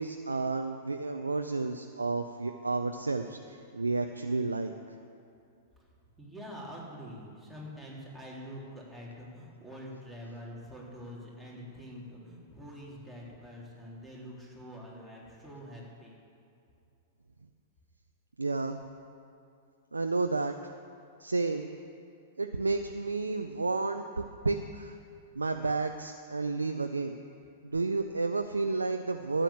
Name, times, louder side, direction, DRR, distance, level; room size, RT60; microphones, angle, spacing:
voice 1, 0.0-4.7 18.4-18.8 19.9-20.5 21.2-21.7 22.4-25.0 25.4-27.2 27.6-29.4, right 3 dB, 85° right, 6 dB, 0.6 m, -31 dB
voice 2, 6.2-16.2, equal, ahead, -5 dB, 3.7 m, -45 dB
13.0 x 9.1 x 7.4 m, 2.6 s
figure-of-eight pair, 100°, 0 cm